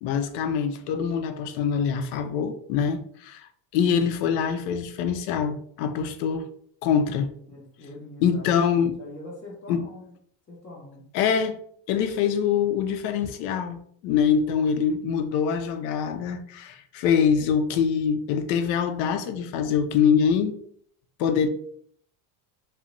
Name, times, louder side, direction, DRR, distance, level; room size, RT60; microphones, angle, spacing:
voice 1, 0.0-6.5 6.8-7.3 8.2-8.9 9.7-9.8 11.1-11.6 11.9-20.6 21.2-21.5, left 7 dB, 75° left, 0.6 m, -24 dB
voice 2, 7.5-10.1 10.5-11.1, left 1 dB, 20° left, 0.3 m, -43 dB
2.2 x 2.0 x 3.8 m
cardioid pair, 150°, 50 cm